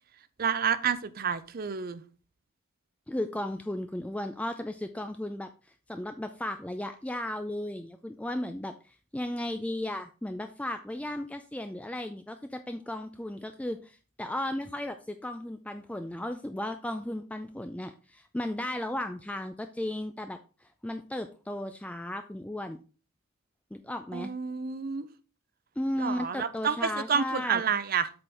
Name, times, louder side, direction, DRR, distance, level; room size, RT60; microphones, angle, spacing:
voice 1, 0.4-2.0 24.1-25.1 26.0-28.1, right 6 dB, 45° right, 0.5 m, -29 dB
voice 2, 3.1-5.5 5.9-22.8 23.7-24.3 25.8-27.6, left 1 dB, 5° left, 0.3 m, -35 dB
7.7 x 4.3 x 4.9 m
head